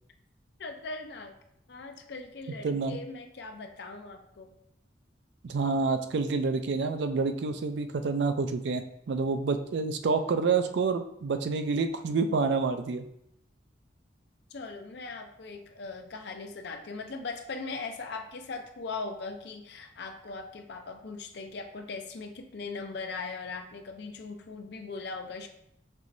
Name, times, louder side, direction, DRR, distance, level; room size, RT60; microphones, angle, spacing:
voice 1, 0.6-1.3 1.7-4.5 14.5-25.5, left 4 dB, 65° left, 5 dB, 0.5 m, -39 dB
voice 2, 2.6-3.0 5.4-13.0, right 4 dB, 70° right, 7 dB, 0.4 m, -28 dB
5.5 x 3.0 x 2.6 m, 0.73 s
head